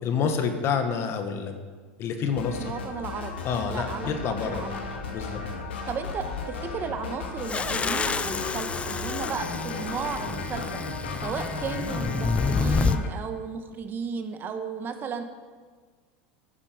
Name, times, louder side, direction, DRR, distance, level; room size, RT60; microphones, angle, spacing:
voice 1, 0.0-1.6 2.0-2.6 3.4-4.6 5.1-5.4, left 6 dB, 45° left, 6 dB, 1.6 m, -28 dB
sound 1, 2.3-13.1, left 4 dB, 90° left, 2.1 m, -35 dB
voice 2, 2.6-3.3 3.6-4.9 5.9-15.2, right 6 dB, 35° right, 7 dB, 1.5 m, -34 dB
sound 2, 7.5-13.0, left 4 dB, 20° left, 0.7 m, -29 dB
14.0 x 9.9 x 5.2 m, 1.5 s
hypercardioid pair, 100°, 6 cm